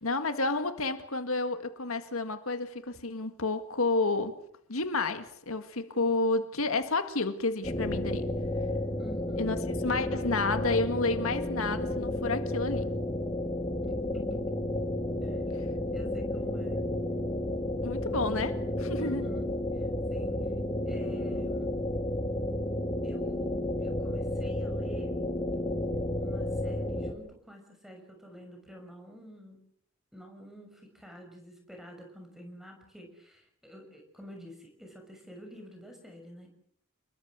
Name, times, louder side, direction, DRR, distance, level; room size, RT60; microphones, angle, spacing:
voice 1, 0.0-4.4 4.7-8.3 9.4-9.6 9.8-12.9 17.8-19.3, left 3 dB, 85° left, 2.0 m, -30 dB
sound 1, 7.6-27.1, left 1 dB, 25° left, 3.4 m, -32 dB
voice 2, 9.0-9.6 14.1-14.5 15.2-15.4 15.9-16.8 19.0-21.7 23.0-25.2 26.2-29.6 30.1-36.5, equal, ahead, 6.6 m, -49 dB
29.0 x 21.5 x 6.5 m
head